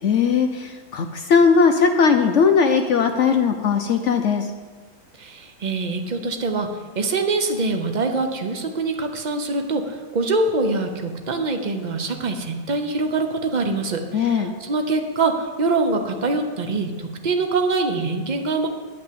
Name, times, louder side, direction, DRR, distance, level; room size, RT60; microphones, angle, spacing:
voice 1, 0.0-4.5 14.1-14.5, left 5 dB, 80° left, 5 dB, 0.6 m, -18 dB
voice 2, 5.2-6.7 6.9-18.7, right 3 dB, 55° right, 5 dB, 0.5 m, -24 dB
9.5 x 6.1 x 8.5 m, 1.5 s
omnidirectional pair, 2.0 m